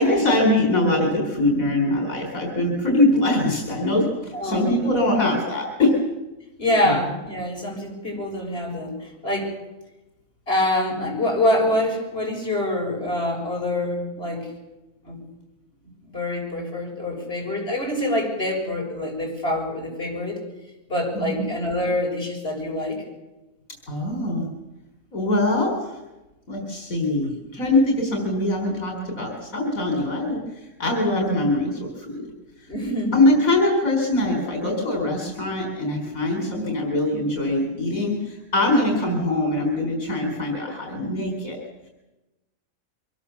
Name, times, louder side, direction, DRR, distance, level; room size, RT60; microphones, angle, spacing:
voice 1, 0.0-6.0 6.8-6.9 21.1-21.4 23.9-24.5 25.1-26.0 26.5-32.3 32.6-32.7 33.1-41.6, left 1 dB, 80° left, 1 dB, 4.5 m, -23 dB
voice 2, 4.3-4.9 6.6-9.5 10.5-14.5 15.0-15.2 16.0-20.4 20.9-23.0 32.7-33.2, left 1 dB, 45° left, -1 dB, 7.0 m, -25 dB
24.5 x 21.0 x 7.2 m, 1.0 s
omnidirectional pair, 1.4 m